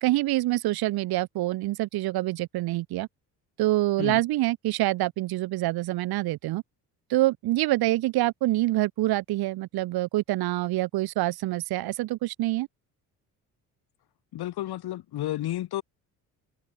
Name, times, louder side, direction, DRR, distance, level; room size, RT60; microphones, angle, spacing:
voice 1, 0.0-3.1 3.6-6.6 7.1-12.7, right 17 dB, 65° right, 0.7 m, -26 dB
voice 2, 14.3-15.8, left 14 dB, 70° left, 1.6 m, -31 dB
supercardioid pair, 60°, 40 cm